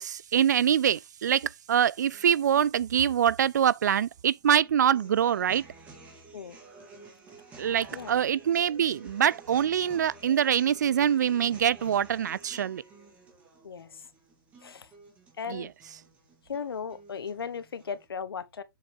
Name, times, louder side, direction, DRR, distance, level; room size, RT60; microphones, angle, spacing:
voice 1, 0.0-5.6 7.6-12.8 15.5-15.7, right 9 dB, 50° right, 0.4 m, -24 dB
sound 1, 2.0-18.0, right 3 dB, 10° right, 2.0 m, -52 dB
voice 2, 13.6-14.0 14.6-14.9 15.4-15.7 16.5-18.6, left 6 dB, 85° left, 1.2 m, -36 dB
7.3 x 5.1 x 3.5 m
hypercardioid pair, 170°, 12 cm